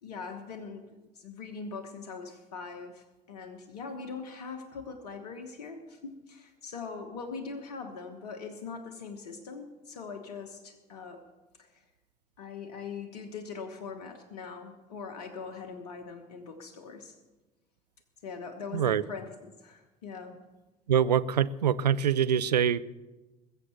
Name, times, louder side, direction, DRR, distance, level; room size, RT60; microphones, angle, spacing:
voice 1, 0.0-11.2 11.6-11.8 12.4-17.1 18.2-20.4, left 5 dB, 70° left, 5 dB, 1.3 m, -42 dB
voice 2, 20.9-22.8, right 8 dB, 85° right, 15 dB, 0.4 m, -24 dB
20.5 x 7.5 x 6.6 m, 1.1 s
figure-of-eight pair, 55°, 20 cm